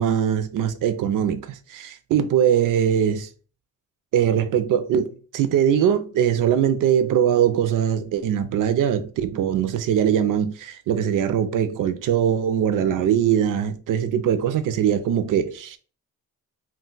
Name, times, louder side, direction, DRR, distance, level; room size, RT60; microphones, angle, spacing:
voice 1, 0.0-3.3 4.1-15.8, right 9 dB, 80° right, 0.5 m, -21 dB
2.3 x 2.2 x 3.8 m
cardioid pair, 95°, 31 cm